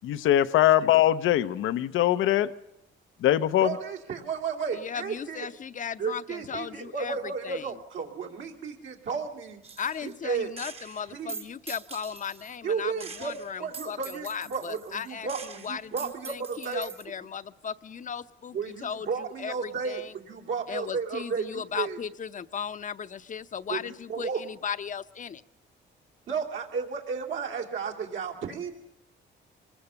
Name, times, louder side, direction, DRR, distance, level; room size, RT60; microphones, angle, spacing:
voice 1, 0.0-2.5 3.2-3.7, left 12 dB, 80° left, 0.7 m, -22 dB
voice 2, 3.6-5.5 6.0-9.6 10.0-10.5 11.1-11.3 12.6-16.9 18.5-22.0 23.7-24.4 26.3-28.7, right 5 dB, 75° right, 2.9 m, -33 dB
voice 3, 4.7-7.2 7.4-7.7 9.8-15.3 15.6-20.1 20.7-25.4, left 7 dB, 40° left, 0.7 m, -36 dB
Gunshot gunfire, 9.6-10.2 10.6-12.6 13.0-17.0, right 4 dB, 30° right, 1.0 m, -43 dB
25.0 x 20.5 x 7.0 m
cardioid pair, 90°, 20 cm